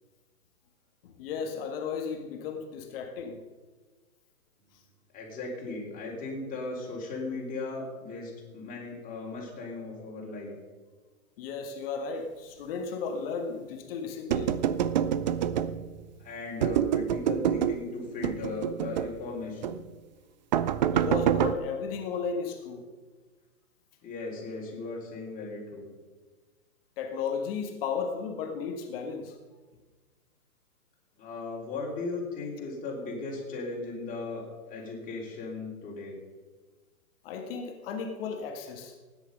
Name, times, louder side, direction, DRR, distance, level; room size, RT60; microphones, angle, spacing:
voice 1, 1.0-3.4 11.4-14.5 20.9-22.9 27.0-29.4 37.2-38.9, left 5 dB, 40° left, 4 dB, 1.6 m, -34 dB
voice 2, 5.1-10.5 16.2-19.8 24.0-25.9 31.2-36.2, left 3 dB, 20° left, -2 dB, 3.8 m, -37 dB
sound 1, 14.3-16.0 16.6-17.8 18.2-19.2 19.6-19.8 20.5-21.5, right 9 dB, 35° right, 0.5 m, -27 dB
16.0 x 9.8 x 5.3 m, 1.3 s
hypercardioid pair, 140°, 44 cm